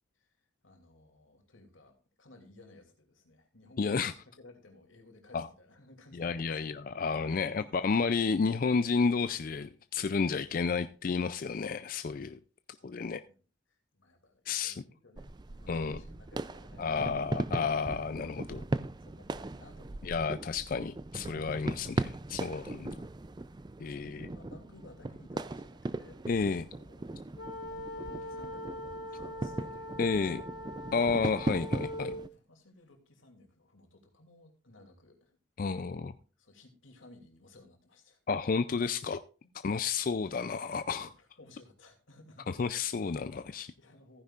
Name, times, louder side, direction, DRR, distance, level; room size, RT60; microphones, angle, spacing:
voice 1, 0.1-6.7 7.3-7.9 12.7-13.4 13.7-17.2 19.0-20.1 23.8-27.2 27.7-30.4 32.3-35.4 35.9-36.0 36.4-38.2 39.4-39.9 40.6-42.6 43.5-44.2, left 2 dB, 90° left, 3 dB, 2.7 m, -57 dB
voice 2, 3.8-4.1 5.3-5.5 6.1-12.4 12.8-13.2 14.5-14.8 15.7-16.0 16.8-18.6 20.0-23.0 23.8-24.3 26.3-26.7 30.0-30.4 30.9-32.2 35.6-36.1 38.3-39.2 39.6-41.1 42.5-43.7, left 5 dB, 45° left, 12 dB, 0.4 m, -31 dB
sound 1, 15.2-32.3, right 2 dB, 20° right, 0.4 m, -39 dB
sound 2, 27.4-32.3, left 1 dB, 65° left, 2.2 m, -42 dB
15.0 x 9.8 x 2.5 m, 0.36 s
head